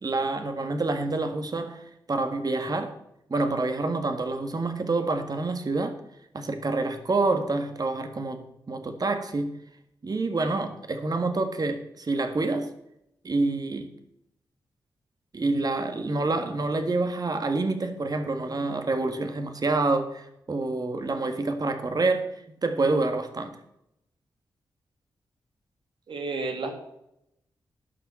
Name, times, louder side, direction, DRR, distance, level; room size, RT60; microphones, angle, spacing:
voice 1, 0.0-3.0 3.3-6.0 6.3-9.5 10.0-12.7 13.2-13.9 15.3-23.6, right 3 dB, 45° right, 7 dB, 1.8 m, -27 dB
voice 2, 26.1-26.7, right 3 dB, 70° right, 4 dB, 2.5 m, -31 dB
11.0 x 6.1 x 7.6 m, 0.80 s
cardioid pair, 50°, 9 cm